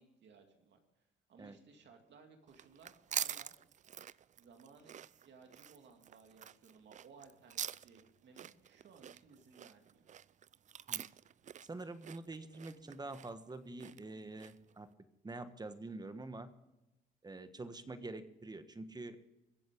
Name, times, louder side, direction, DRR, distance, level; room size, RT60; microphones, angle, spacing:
voice 1, 0.0-3.6 4.4-10.1, right 5 dB, 65° right, 4 dB, 2.3 m, -61 dB
sound 1, 2.5-14.7, right 9 dB, 40° right, 0.4 m, -46 dB
voice 2, 11.6-14.9 15.2-16.5 17.2-19.2, right 2 dB, 20° right, 10 dB, 1.3 m, -46 dB
22.5 x 7.8 x 5.1 m, 0.95 s
cardioid pair, 90°, 20 cm